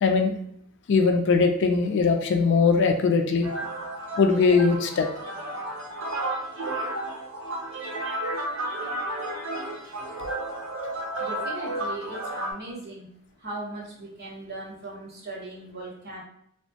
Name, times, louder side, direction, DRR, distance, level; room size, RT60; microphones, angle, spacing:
voice 1, 0.0-0.4 0.9-3.5 4.2-5.1, left 4 dB, 60° left, 5 dB, 0.3 m, -21 dB
sound 1, 3.4-12.5, right 1 dB, 85° right, 0.7 m, -32 dB
voice 2, 11.2-13.1 13.4-16.2, right 2 dB, 50° right, -4 dB, 0.9 m, -38 dB
2.9 x 2.2 x 2.7 m, 0.70 s
head